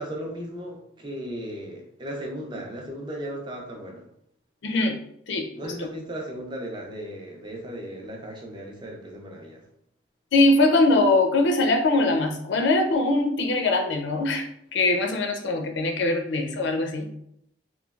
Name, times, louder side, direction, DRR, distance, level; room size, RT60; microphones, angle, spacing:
voice 1, 0.0-4.1 5.5-9.6, right 1 dB, 25° right, 0 dB, 0.5 m, -36 dB
voice 2, 4.6-5.0 5.3-5.5 5.8-5.9 10.3-17.1, left 2 dB, 75° left, 3 dB, 0.5 m, -22 dB
3.1 x 2.2 x 2.3 m, 0.73 s
head